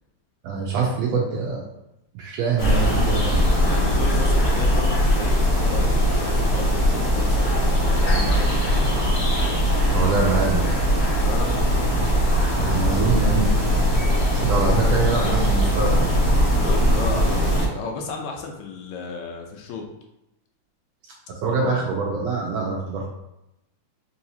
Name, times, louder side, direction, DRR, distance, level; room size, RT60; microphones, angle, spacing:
voice 1, 0.4-1.7 2.1-3.4 9.9-10.7 12.5-13.5 14.3-16.1 21.4-23.1, right 4 dB, 80° right, -2 dB, 1.6 m, -24 dB
sound 1, 2.6-17.7, equal, 60° left, 0.8 m, -20 dB
voice 2, 3.6-9.0 11.2-11.6 16.5-19.9 21.5-21.8, left 4 dB, 80° left, 2 dB, 1.9 m, -34 dB
4.7 x 2.8 x 2.7 m, 0.87 s
omnidirectional pair, 3.4 m